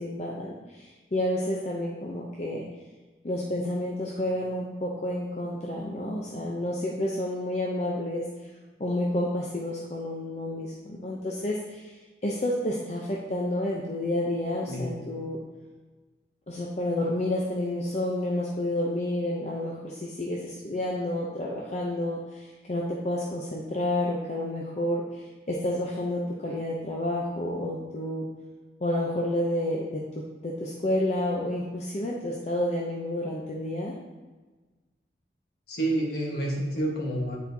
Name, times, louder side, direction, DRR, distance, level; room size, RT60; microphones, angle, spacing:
voice 1, 0.0-2.6 3.2-8.5 8.8-11.9 12.2-15.4 16.5-28.3 28.8-33.9, left 1 dB, 40° left, -3 dB, 0.6 m, -30 dB
voice 2, 35.7-37.4, right 1 dB, 60° left, -2 dB, 1.3 m, -28 dB
9.2 x 4.2 x 2.7 m, 1.3 s
head